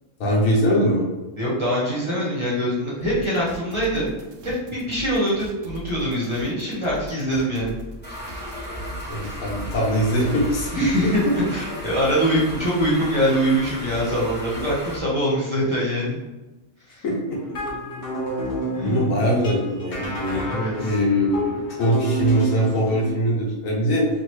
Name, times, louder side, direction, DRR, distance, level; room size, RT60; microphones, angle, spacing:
voice 1, 0.2-1.1 9.1-10.9 17.0-17.4 18.8-20.5 20.8-24.1, equal, 80° left, -3 dB, 1.3 m, -22 dB
voice 2, 1.4-4.1 4.4-7.8 10.7-16.2 16.9-17.0 18.7-19.2 20.4-20.9, equal, 25° right, -8 dB, 0.9 m, -24 dB
sound 1, 3.0-10.7, equal, 75° right, 0.9 m, -39 dB
sound 2, 8.0-15.0, left 1 dB, 15° left, 0.3 m, -35 dB
sound 3, 17.3-23.1, right 1 dB, 40° left, 0.9 m, -29 dB
3.0 x 2.6 x 3.1 m, 1.1 s
omnidirectional pair, 1.4 m